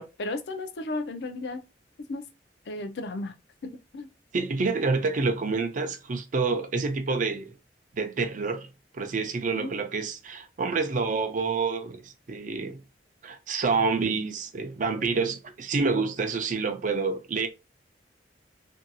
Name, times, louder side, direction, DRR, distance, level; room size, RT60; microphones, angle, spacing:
voice 1, 0.0-1.6 2.0-2.2 2.7-3.3 3.6-4.1 9.6-9.7, left 2 dB, 70° left, 0.5 m, -34 dB
voice 2, 4.3-7.5 7.9-8.7 8.9-12.8 13.2-17.5, right 4 dB, 45° right, 0.4 m, -28 dB
2.6 x 2.3 x 2.6 m
head